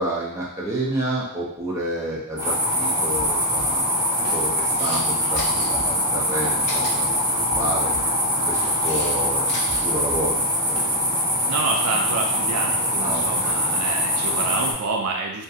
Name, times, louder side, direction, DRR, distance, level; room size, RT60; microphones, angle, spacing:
voice 1, 0.0-3.9 4.3-7.9 8.5-9.5 9.8-10.4 10.9-11.1 13.0-13.6, right 1 dB, 15° right, -6 dB, 0.4 m, -29 dB
sound 1, 2.4-14.7, equal, 35° right, 1.0 m, -23 dB
sound 2, 3.1-4.8 5.1-11.9, left 1 dB, 70° left, 0.7 m, -41 dB
Camera, 4.7-5.0 5.3-5.7 6.6-6.9 8.2-9.1 9.4-9.8, left 2 dB, 30° left, 1.1 m, -33 dB
voice 2, 11.5-15.4, right 3 dB, 80° right, 1 dB, 0.4 m, -28 dB
2.6 x 2.5 x 2.3 m, 0.74 s
head